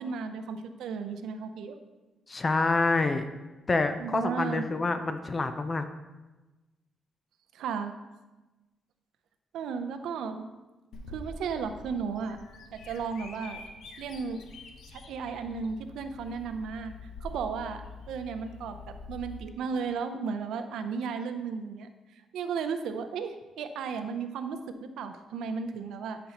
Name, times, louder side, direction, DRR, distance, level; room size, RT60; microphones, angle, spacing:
voice 1, 0.0-1.8 4.0-4.6 7.5-7.9 9.5-10.4 11.1-12.4 12.7-13.6 14.0-14.4 14.9-16.9 17.2-17.8 18.1-18.8 19.1-21.9 22.3-26.2, right 5 dB, 90° right, 8 dB, 0.6 m, -34 dB
voice 2, 2.3-3.3 3.7-5.9, left 3 dB, 25° left, 9 dB, 0.5 m, -27 dB
Bird vocalization bird call bird song, 10.9-19.4, left 3 dB, 80° left, 0.8 m, -46 dB
12.0 x 5.3 x 2.9 m, 1.1 s
cardioid pair, 130°, 0 cm